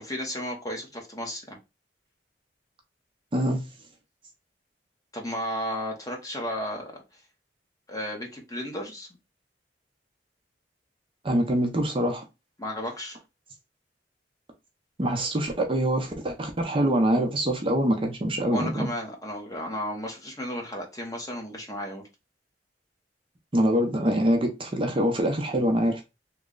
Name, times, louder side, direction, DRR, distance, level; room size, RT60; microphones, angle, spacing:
voice 1, 0.0-1.6 5.1-7.0 7.9-9.1 12.6-13.2 18.5-22.0, equal, 20° left, 0.9 m, -33 dB
voice 2, 3.3-3.7 11.2-12.2 15.0-18.9 23.5-26.1, right 1 dB, 30° right, 0.6 m, -24 dB
3.1 x 2.2 x 3.7 m
head